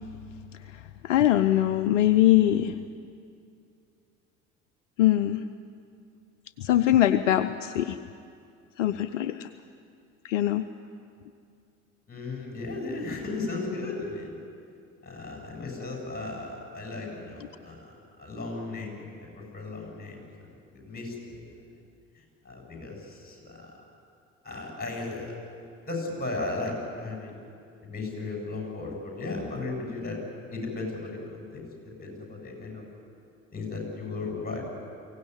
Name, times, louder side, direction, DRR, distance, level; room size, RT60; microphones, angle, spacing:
voice 1, 1.0-2.8 5.0-5.4 6.6-8.0 8.8-9.5 10.2-10.6, left 13 dB, 70° left, 11 dB, 0.7 m, -22 dB
voice 2, 12.1-14.3 15.0-20.2 20.7-21.4 22.4-23.7 24.4-25.4 25.9-27.3 27.8-30.2 30.5-31.6 32.0-32.8 33.5-34.6, left 3 dB, 25° left, 0 dB, 7.9 m, -35 dB
23.0 x 17.0 x 9.9 m, 2.4 s
figure-of-eight pair, 55°, 39 cm